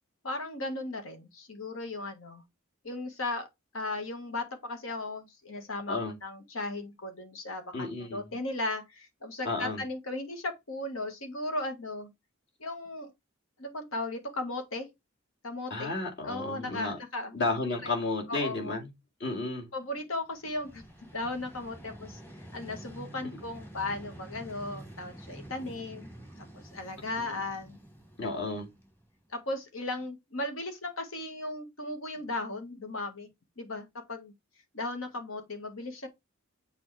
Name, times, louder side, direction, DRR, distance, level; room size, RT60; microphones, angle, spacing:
voice 1, 0.2-2.4 2.8-3.5 3.7-12.1 12.6-13.1 13.6-14.9 15.4-15.9 16.2-17.4 17.8-17.9 18.3-18.8 19.7-26.1 26.4-27.8 28.2-28.4 29.3-33.3 33.6-34.3 34.7-36.1, left 2 dB, 85° left, 1.6 m, -36 dB
voice 2, 7.7-8.3 9.4-9.8 15.7-17.0 17.3-18.9 19.2-19.7 27.2-27.3 28.2-28.7, left 3 dB, 60° left, 2.2 m, -32 dB
Vehicle, 20.3-29.3, right 1 dB, 10° left, 1.2 m, -48 dB
7.1 x 4.3 x 3.3 m
head